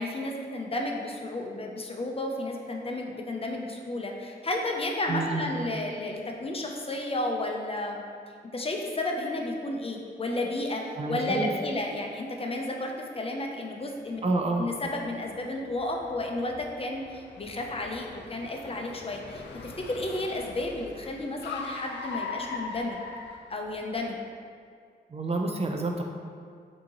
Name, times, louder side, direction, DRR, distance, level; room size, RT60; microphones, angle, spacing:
voice 1, 0.0-8.0 8.5-14.2 14.6-23.0 23.5-24.2, left 2 dB, 30° left, 1 dB, 0.5 m, -32 dB
voice 2, 5.1-5.4 11.0-11.5 14.2-14.7 25.1-26.0, right 3 dB, 35° right, 2 dB, 0.4 m, -28 dB
Car, 14.2-24.0, left 4 dB, 80° left, 0.4 m, -41 dB
5.1 x 2.8 x 2.9 m, 2.2 s
cardioid pair, 65°, 18 cm